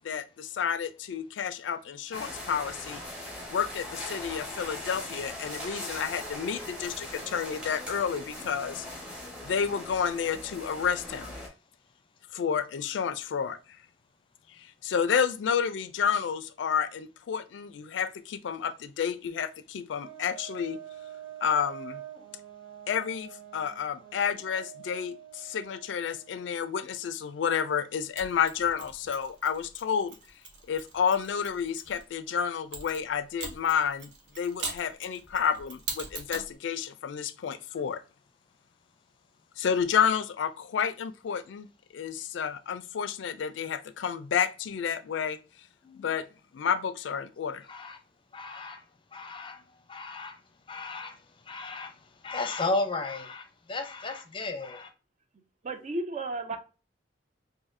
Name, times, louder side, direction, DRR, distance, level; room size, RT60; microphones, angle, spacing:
voice 1, 0.0-3.0 3.5-8.9 9.4-11.3 12.3-13.6 14.6-20.8 21.4-22.0 22.9-30.2 30.7-34.1 34.4-38.0 39.6-41.7 41.9-45.4 46.0-46.2 46.5-47.7, left 7 dB, 75° left, 0.3 m, -30 dB
sound 1, 2.1-11.5, left 1 dB, 5° right, 1.1 m, -40 dB
Brass instrument, 20.0-26.7, right 11 dB, 90° right, 0.7 m, -46 dB
Mechanisms, 28.2-32.0 32.7-36.5, right 4 dB, 70° right, 0.9 m, -42 dB
voice 2, 47.7-48.0 48.3-48.9 49.1-50.4 50.7-54.9, left 3 dB, 30° left, 0.6 m, -35 dB
voice 3, 55.6-56.6, right 2 dB, 40° right, 0.5 m, -33 dB
4.0 x 2.7 x 2.5 m
head